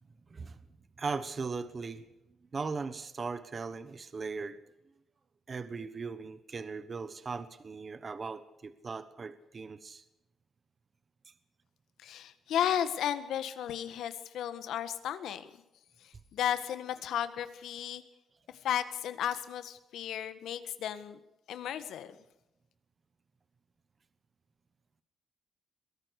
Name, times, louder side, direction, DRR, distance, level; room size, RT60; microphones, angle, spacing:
voice 1, 1.0-2.0 2.5-4.6 5.5-10.0, right 4 dB, 30° right, 12 dB, 1.2 m, -38 dB
voice 2, 12.0-15.5 16.0-18.0 18.6-21.2 21.5-22.2, left 10 dB, 85° left, 11 dB, 1.6 m, -34 dB
22.5 x 17.5 x 6.6 m, 0.94 s
cardioid pair, 145°, 0 cm